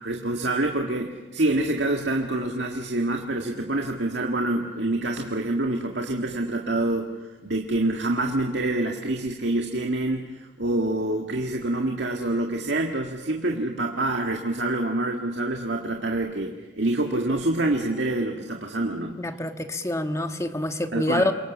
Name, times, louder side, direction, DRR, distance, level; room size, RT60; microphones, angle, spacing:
voice 1, 0.0-19.2 20.9-21.3, right 2 dB, 80° right, 2 dB, 1.9 m, -26 dB
voice 2, 19.2-21.3, left 1 dB, 15° left, 7 dB, 1.4 m, -26 dB
28.5 x 23.5 x 7.3 m, 1.2 s
head